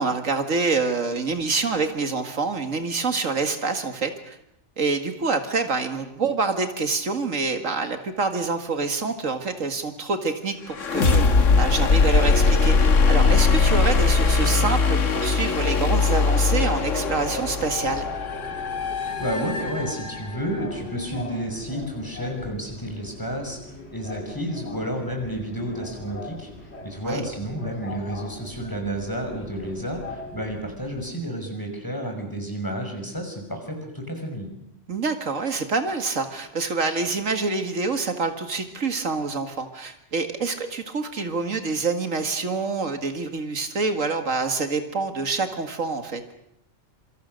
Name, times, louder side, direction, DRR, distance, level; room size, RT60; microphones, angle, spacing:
voice 1, 0.0-4.4 4.8-11.2 11.6-18.1 27.0-27.2 34.9-46.2, right 4 dB, 80° right, 7 dB, 2.3 m, -26 dB
sound 1, 10.7-20.5, left 4 dB, 70° left, 1.8 m, -21 dB
Subway metro underground, 11.9-31.1, left 2 dB, 55° left, 2.7 m, -39 dB
voice 2, 19.2-34.5, equal, 15° left, 3 dB, 6.0 m, -31 dB
27.0 x 25.0 x 6.6 m, 0.75 s
omnidirectional pair, 1.3 m